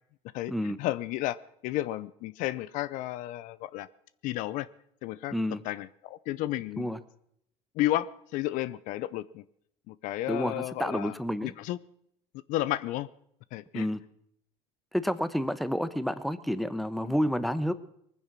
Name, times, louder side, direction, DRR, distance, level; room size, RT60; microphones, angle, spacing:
voice 1, 0.3-1.4 1.6-3.9 4.2-4.7 5.0-5.4 5.6-6.9 7.8-9.4 9.9-11.1 11.4-11.8 12.5-13.1 13.5-13.9 17.0-17.1, left 15 dB, 65° left, 18 dB, 0.6 m, -32 dB
voice 2, 5.3-5.6 6.8-7.0 10.3-11.5 13.7-14.0 14.9-17.7, equal, ahead, 13 dB, 0.9 m, -29 dB
20.0 x 9.9 x 6.1 m, 0.71 s
supercardioid pair, 100°, 14 cm